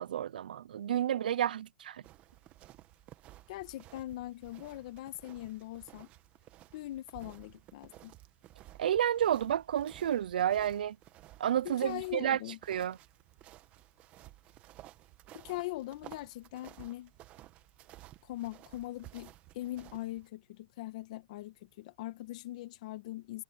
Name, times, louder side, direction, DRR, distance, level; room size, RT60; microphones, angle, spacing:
voice 1, 0.0-2.0 8.8-11.0 11.4-12.4 12.7-13.0, right 10 dB, 90° right, 0.7 m, -30 dB
sound 1, 2.0-20.3, right 15 dB, 30° right, 1.4 m, -55 dB
voice 2, 3.5-6.1 6.7-8.1 11.6-12.6 15.3-17.1 18.2-23.4, left 16 dB, 55° left, 1.6 m, -41 dB
supercardioid pair, 155°, 5 cm